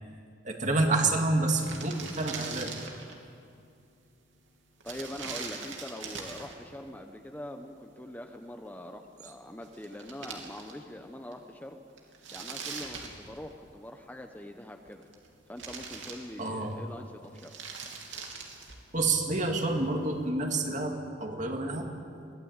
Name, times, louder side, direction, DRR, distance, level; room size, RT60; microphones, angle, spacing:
voice 1, 0.4-2.7 16.4-16.7 18.9-21.9, right 2 dB, 40° right, 3 dB, 2.2 m, -28 dB
sound 1, 1.1-1.2 1.3-3.2 4.8-6.6 9.3-9.4 9.6-11.0 11.3-11.4 12.0-13.7 14.7-15.3 15.6-16.7 17.2-18.9, right 5 dB, 80° right, 3.0 m, -42 dB
voice 2, 4.8-11.8 12.3-15.1 15.5-17.6, left 1 dB, 10° left, 4 dB, 0.9 m, -43 dB
23.0 x 16.5 x 8.9 m, 2.4 s
head